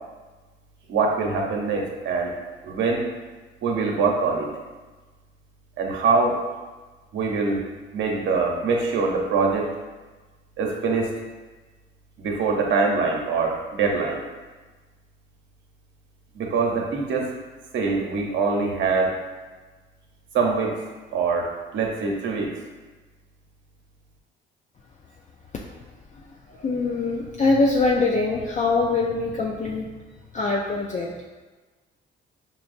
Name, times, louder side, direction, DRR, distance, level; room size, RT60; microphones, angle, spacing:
voice 1, 0.9-2.3 2.6-3.0 3.6-4.5 5.8-6.4 7.1-7.6 7.9-9.7 10.6-11.1 12.2-14.2 16.3-17.3 17.7-19.2 20.3-20.8 21.1-22.5, right 4 dB, 70° right, 0 dB, 0.8 m, -23 dB
voice 2, 26.1-29.9 30.3-31.3, left 3 dB, 40° left, -2 dB, 0.4 m, -24 dB
5.7 x 2.0 x 2.5 m, 1.3 s
cardioid pair, 90°, 20 cm